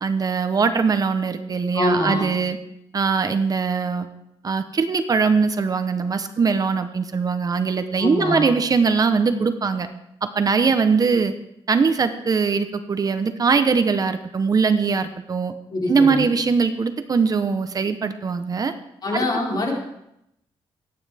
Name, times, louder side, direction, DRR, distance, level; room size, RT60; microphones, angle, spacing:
voice 1, 0.0-2.6 2.9-4.1 4.4-9.9 10.2-11.3 11.7-15.5 15.9-18.7 19.1-19.3, right 5 dB, 40° right, 9 dB, 0.9 m, -21 dB
voice 2, 1.7-2.2 8.0-8.5 15.7-16.2 19.0-19.7, left 2 dB, 45° left, -2 dB, 4.6 m, -24 dB
24.0 x 9.6 x 3.5 m, 0.80 s
cardioid pair, 115°, 10 cm